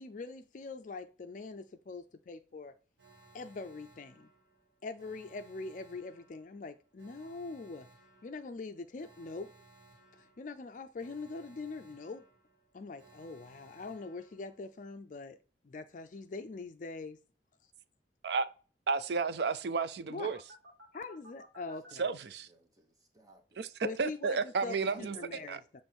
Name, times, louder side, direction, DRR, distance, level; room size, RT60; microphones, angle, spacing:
voice 1, 0.0-2.7 3.3-4.3 4.8-7.9 8.2-9.5 10.1-12.2 12.7-15.4 15.6-17.2 20.1-20.4 20.9-22.0 23.8-25.6, left 3 dB, 45° left, 0.4 m, -43 dB
Alarm, 3.0-14.9 20.3-21.9, right 1 dB, 85° right, 2.0 m, -60 dB
voice 2, 18.9-20.4 22.0-22.5 23.6-23.7 24.0-25.2 25.5-25.6, right 4 dB, 65° right, 0.4 m, -32 dB
voice 3, 21.9-23.7 24.8-25.6, right 1 dB, 20° right, 1.0 m, -58 dB
7.1 x 3.1 x 4.4 m
head